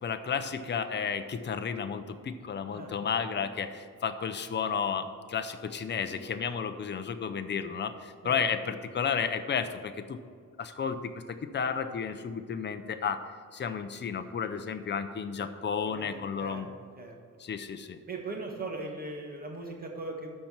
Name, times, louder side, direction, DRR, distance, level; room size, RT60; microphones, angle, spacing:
voice 1, 0.0-10.2 10.6-13.2 13.5-16.7 17.4-18.0, left 6 dB, 35° left, 8 dB, 0.5 m, -32 dB
voice 2, 15.8-16.6 17.0-17.1 18.1-20.3, right 3 dB, 25° right, 1 dB, 1.4 m, -39 dB
12.0 x 4.5 x 7.2 m, 2.1 s
wide cardioid pair, 170°, 33 cm